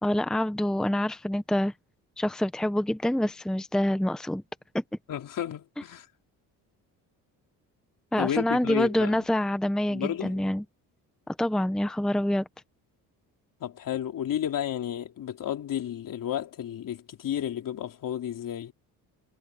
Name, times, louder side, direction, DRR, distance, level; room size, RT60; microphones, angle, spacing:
voice 1, 0.0-1.7 2.2-4.4 4.7-4.8 8.1-10.6 11.3-12.5, left 1 dB, ahead, 0.9 m, -26 dB
voice 2, 5.1-6.1 8.2-9.3 9.9-10.4 13.6-18.7, left 10 dB, 60° left, 3.8 m, -32 dB
cardioid pair, 90°, 37 cm